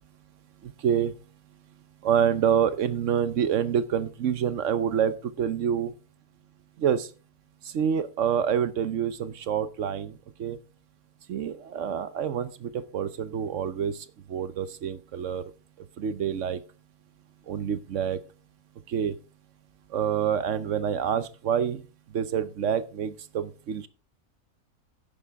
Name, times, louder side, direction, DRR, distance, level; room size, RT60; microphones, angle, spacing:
voice 1, 0.6-1.1 2.0-5.9 6.8-7.1 7.7-10.1 10.4-10.6 11.3-13.9 14.3-15.4 16.0-16.6 17.5-18.2 18.9-19.2 19.9-21.8 22.1-23.9, right 8 dB, 60° right, 14 dB, 1.0 m, -27 dB
10.5 x 9.1 x 3.5 m, 0.32 s
omnidirectional pair, 1.6 m